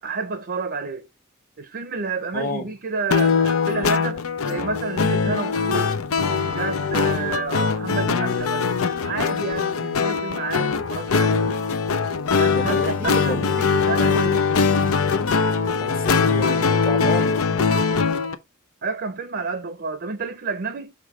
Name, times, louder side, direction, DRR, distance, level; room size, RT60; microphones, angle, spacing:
voice 1, 0.0-1.1 1.6-6.0 6.4-8.7 9.0-11.5 12.4-14.5 18.8-20.9, right 4 dB, 50° right, 0.6 m, -30 dB
voice 2, 2.3-2.7 12.4-13.6 15.8-17.4, left 2 dB, 45° left, 1.2 m, -29 dB
sound 1, 3.1-18.3, left 5 dB, 85° left, 0.7 m, -22 dB
6.6 x 3.2 x 4.8 m
head